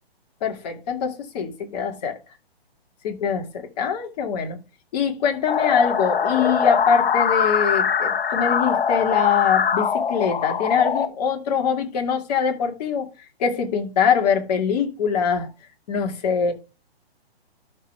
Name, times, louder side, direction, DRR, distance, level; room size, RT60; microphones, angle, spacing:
voice 1, 0.4-2.2 3.0-4.6 4.9-13.1 13.4-15.5 15.9-16.5, left 7 dB, 40° left, 2.4 m, -23 dB
sound 1, 5.5-11.1, left 7 dB, 60° left, 1.6 m, -22 dB
12.5 x 5.4 x 3.4 m
figure-of-eight pair, 135°, 31 cm